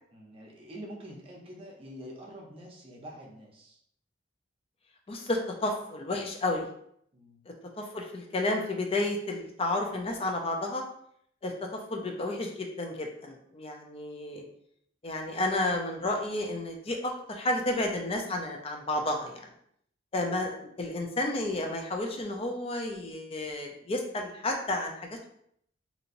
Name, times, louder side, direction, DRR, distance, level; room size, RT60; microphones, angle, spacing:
voice 1, 0.1-3.8 7.1-7.4, equal, 30° right, -2 dB, 0.7 m, -46 dB
voice 2, 5.1-6.7 7.8-10.8 11.4-14.4 15.0-19.5 20.1-25.2, left 2 dB, 30° left, 2 dB, 0.5 m, -31 dB
2.9 x 2.8 x 2.5 m, 0.69 s
head